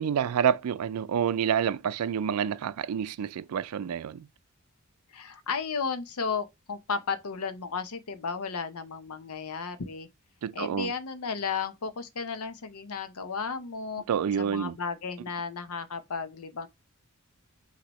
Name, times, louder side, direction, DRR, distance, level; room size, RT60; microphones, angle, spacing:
voice 1, 0.0-4.3 10.4-10.9 14.1-14.8, right 8 dB, 85° right, 0.4 m, -28 dB
voice 2, 5.1-10.1 10.5-14.0 14.4-16.7, left 5 dB, 90° left, 0.7 m, -34 dB
6.1 x 2.8 x 3.0 m
head